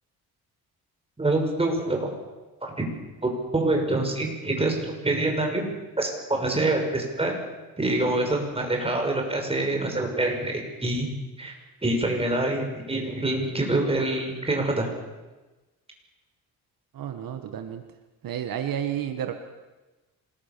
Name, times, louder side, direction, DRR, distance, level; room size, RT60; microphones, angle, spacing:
voice 1, 1.2-2.2 2.6-2.9 3.2-7.4 7.8-11.1 11.4-11.6 11.8-14.9, right 2 dB, 15° right, 2 dB, 6.3 m, -26 dB
voice 2, 16.9-17.8 18.2-19.3, right 10 dB, 70° right, 6 dB, 1.8 m, -31 dB
26.5 x 21.0 x 7.0 m, 1.2 s
cardioid pair, 115°, 36 cm